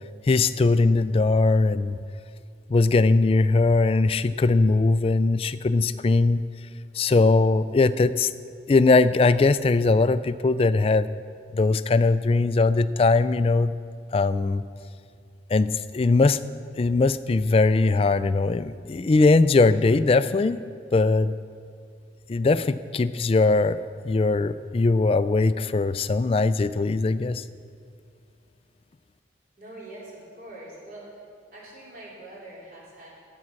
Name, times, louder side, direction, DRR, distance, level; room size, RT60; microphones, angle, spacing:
voice 1, 0.3-2.0 2.7-6.4 6.9-8.3 8.7-11.1 11.5-13.7 14.1-14.6 15.5-16.4 16.8-20.6 20.9-21.3 22.3-27.4, left 3 dB, 30° left, 15 dB, 0.3 m, -20 dB
voice 2, 29.6-31.2 31.5-33.1, right 1 dB, 50° right, -6 dB, 3.9 m, -43 dB
14.0 x 8.5 x 6.4 m, 2.2 s
head